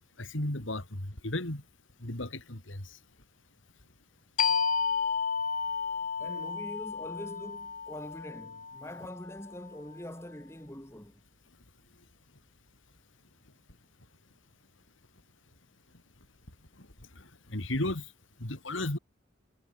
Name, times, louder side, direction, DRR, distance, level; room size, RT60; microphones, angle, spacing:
voice 1, 0.2-1.6 2.0-2.8 17.5-18.1 18.4-19.0, left 1 dB, 75° left, 3.4 m, -34 dB
sound 1, 4.4-9.7, left 6 dB, 45° left, 1.1 m, -32 dB
voice 2, 6.2-11.2, equal, 15° left, 4.9 m, -44 dB
head